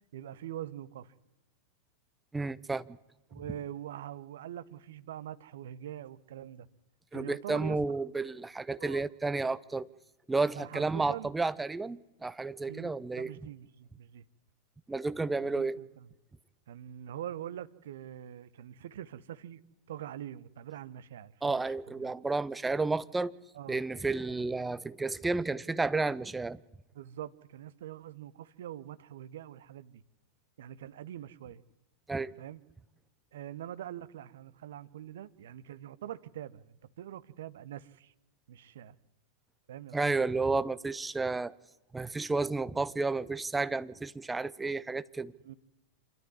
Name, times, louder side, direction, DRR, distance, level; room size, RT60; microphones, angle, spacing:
voice 1, 0.1-1.1 3.3-6.7 7.1-7.8 8.8-9.0 10.6-11.3 12.7-14.2 15.5-16.1 16.7-19.6 19.9-21.6 22.0-22.1 23.5-23.8 26.9-30.0 30.6-31.6 32.4-32.6 33.3-38.1 38.5-39.0 39.7-40.6 45.4-45.5, right 11 dB, 60° right, 0.9 m, -44 dB
voice 2, 2.3-3.0 7.1-9.9 10.3-13.3 14.9-15.8 21.4-23.3 23.7-26.6 32.1-32.3 39.9-41.5 41.9-45.3, right 3 dB, 10° right, 0.7 m, -31 dB
26.0 x 12.0 x 9.8 m
figure-of-eight pair, 90°, 0 cm